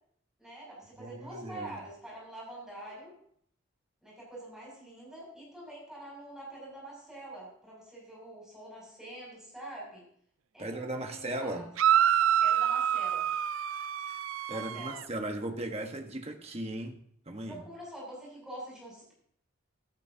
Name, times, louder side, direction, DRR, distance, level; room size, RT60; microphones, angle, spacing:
voice 1, 0.4-3.1 4.0-10.0 10.5-11.7 12.4-13.3 14.5-15.0 17.5-19.1, right 1 dB, 5° right, -5 dB, 6.7 m, -45 dB
voice 2, 1.0-1.8 10.6-11.7 14.0-14.2 14.5-17.0 17.3-17.6, right 1 dB, 30° right, 4 dB, 1.3 m, -37 dB
sound 1, 11.8-15.0, right 10 dB, 75° right, 0.4 m, -27 dB
15.5 x 13.5 x 2.8 m, 0.64 s
head